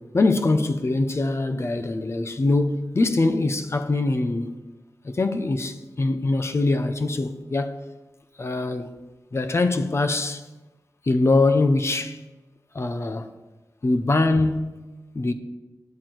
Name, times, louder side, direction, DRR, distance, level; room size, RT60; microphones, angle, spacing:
voice 1, 0.0-4.6 5.0-7.8 8.4-8.9 9.3-10.4 11.0-12.2 12.7-13.3 13.8-14.8 15.1-15.3, left 2 dB, 40° left, 0.7 m, -23 dB
10.5 x 4.4 x 7.7 m
wide cardioid pair, 95°, 7 cm